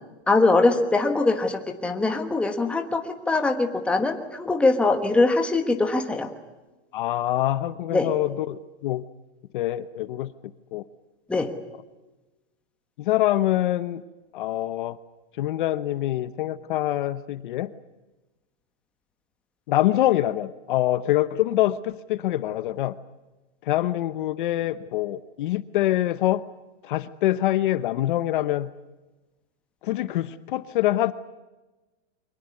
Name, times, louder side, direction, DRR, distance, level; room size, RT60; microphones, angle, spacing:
voice 1, 0.3-6.3 7.9-8.1 11.3-11.5, left 3 dB, 5° left, 4 dB, 1.2 m, -22 dB
voice 2, 6.9-9.0 9.5-10.3 10.7-10.8 13.0-14.0 14.3-15.0 15.4-17.7 19.7-22.9 23.7-26.4 26.8-28.7 29.8-31.1, left 14 dB, 45° left, 14 dB, 0.9 m, -25 dB
23.5 x 20.5 x 9.5 m, 1.1 s
supercardioid pair, 170°, 34 cm